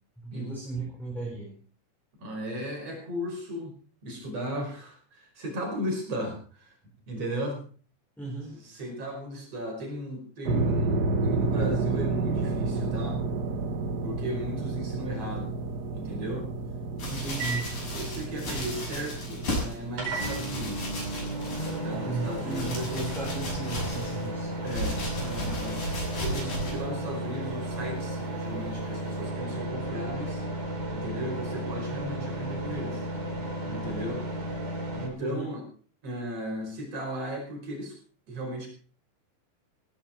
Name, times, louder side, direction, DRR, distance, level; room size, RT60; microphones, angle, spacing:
voice 1, 0.2-1.5 8.2-8.6 17.1-17.8 21.9-24.5 35.2-35.5, right 3 dB, ahead, -2 dB, 4.1 m, -35 dB
voice 2, 2.2-3.7 4.0-6.7 7.1-7.6 8.5-13.2 14.0-15.5 15.9-16.5 17.0-20.9 21.8-22.9 24.6-25.8 26.1-30.4 30.9-33.0 33.7-34.2 35.0-35.6 36.0-37.9 38.3-38.7, equal, 45° right, 2 dB, 6.4 m, -36 dB
sound 1, 10.4-25.7, right 3 dB, 65° right, 1.0 m, -32 dB
sound 2, 17.0-19.7 20.1-21.9 22.2-24.3 24.7-26.8 27.5-27.6, equal, 70° left, 8.8 m, -35 dB
sound 3, 17.0-35.1, right 1 dB, 80° right, 6.4 m, -34 dB
17.0 x 15.0 x 4.5 m, 0.42 s
omnidirectional pair, 4.1 m